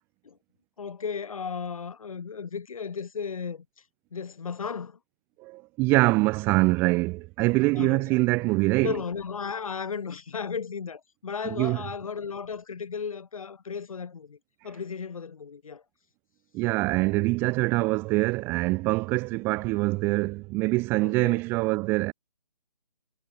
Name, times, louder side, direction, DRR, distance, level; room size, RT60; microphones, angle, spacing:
voice 1, 0.8-3.6 4.1-5.0 7.7-8.0 8.8-14.4 14.6-15.8 21.0-21.4, left 6 dB, 60° left, 4.6 m, -35 dB
voice 2, 5.4-9.0 11.4-11.8 16.5-22.1, right 23 dB, 10° right, 0.5 m, -24 dB
figure-of-eight pair, 150°, 20 cm